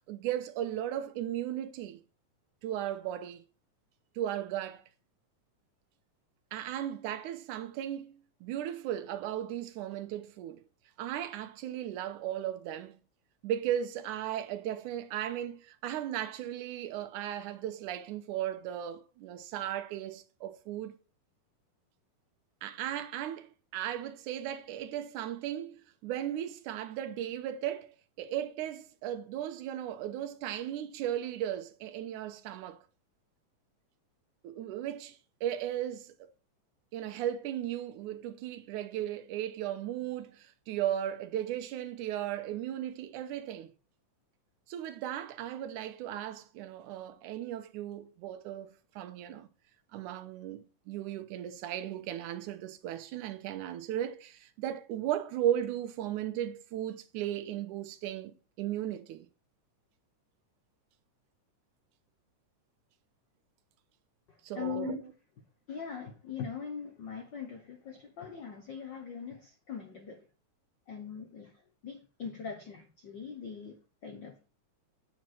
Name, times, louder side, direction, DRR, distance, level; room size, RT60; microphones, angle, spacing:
voice 1, 0.1-2.0 2.6-3.4 4.2-4.8 6.5-10.6 11.0-13.0 13.4-20.9 22.6-32.8 34.4-36.1 36.9-43.7 44.7-49.5 49.9-58.3 58.6-59.3 64.4-65.1, right 11 dB, 80° right, 2.2 m, -36 dB
voice 2, 64.6-65.0 65.7-70.2 70.9-71.5 71.8-74.5, left 7 dB, 80° left, 1.0 m, -41 dB
8.6 x 7.5 x 4.3 m
omnidirectional pair, 3.7 m